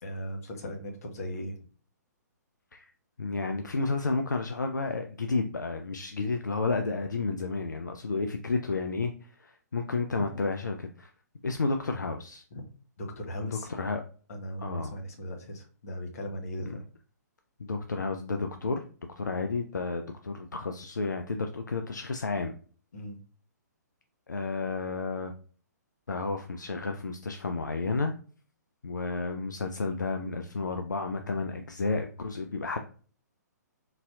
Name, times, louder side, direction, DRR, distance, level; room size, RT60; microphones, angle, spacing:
voice 1, 0.0-1.6 12.5-12.6 13.0-13.7 14.3-16.8 22.9-23.2, equal, 55° left, 3 dB, 1.0 m, -38 dB
voice 2, 3.2-11.1 11.4-12.4 13.4-14.0 14.6-14.9 16.7-16.8 17.6-18.8 19.2-22.5 24.3-25.3 26.1-28.1 28.8-32.8, left 3 dB, 80° left, 5 dB, 0.4 m, -31 dB
3.8 x 2.6 x 2.3 m, 0.41 s
figure-of-eight pair, 125°, 10 cm